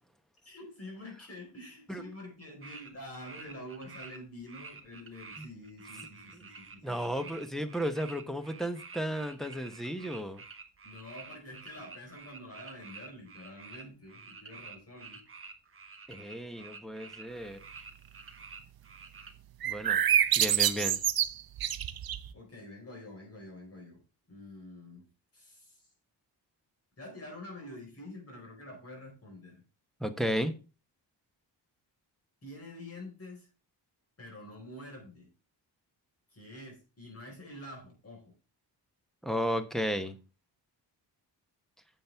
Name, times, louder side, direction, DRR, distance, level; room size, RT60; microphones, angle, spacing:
voice 1, 0.4-7.3 10.8-15.2 22.3-24.0 24.3-25.1 25.3-25.8 27.0-29.6 32.4-33.5 34.2-35.3 36.3-38.3, left 1 dB, 35° left, 4.7 m, -47 dB
sound 1, 2.6-2.9 3.1-4.2 4.5-19.3, right 4 dB, 30° right, 1.2 m, -49 dB
voice 2, 6.8-10.4 16.1-17.6 19.6-20.0 20.4-21.0 30.0-30.5 39.2-40.2, equal, ahead, 1.0 m, -33 dB
sound 2, 19.6-22.3, right 10 dB, 55° right, 0.7 m, -27 dB
10.0 x 7.5 x 3.5 m
wide cardioid pair, 140°, 43 cm